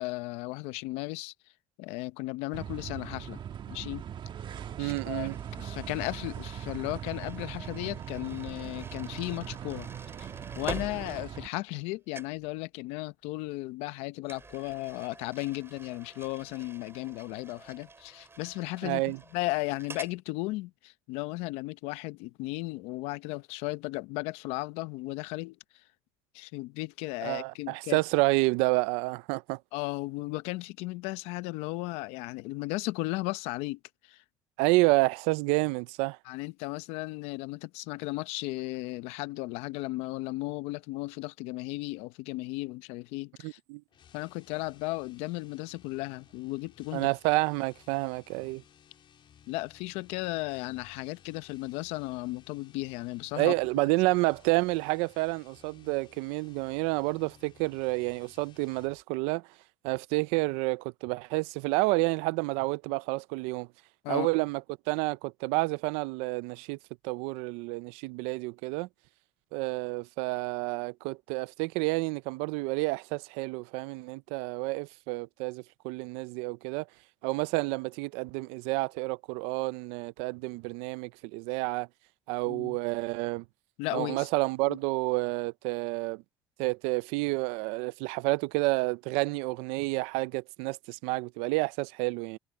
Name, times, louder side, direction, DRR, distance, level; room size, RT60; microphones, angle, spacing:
voice 1, 0.0-1.3 1.8-3.4 3.7-4.0 4.8-5.3 5.6-9.9 10.2-10.3 10.5-25.6 26.3-28.0 29.7-34.2 36.2-43.6 44.1-47.1 49.5-53.5 64.0-64.3 82.5-82.8 83.8-84.3 84.7-84.8, left 21 dB, 85° left, 0.8 m, -35 dB
sound 1, 2.5-11.5, right 9 dB, 50° right, 1.4 m, -40 dB
voice 2, 4.8-5.4 18.8-19.2 27.2-29.6 34.6-36.2 43.4-43.8 46.9-48.6 53.4-59.4 59.8-63.7 64.1-64.6 64.9-66.8 67.0-68.9 69.5-76.8 77.2-81.9 82.3-83.4 83.9-86.2 86.6-92.4, right 24 dB, 85° right, 0.6 m, -29 dB
sound 2, 4.9-11.9 12.1-12.5 14.2-20.2, right 3 dB, 25° right, 7.8 m, -47 dB
sound 3, 43.9-59.0, left 9 dB, 55° left, 3.8 m, -59 dB
supercardioid pair, 80°, 10 cm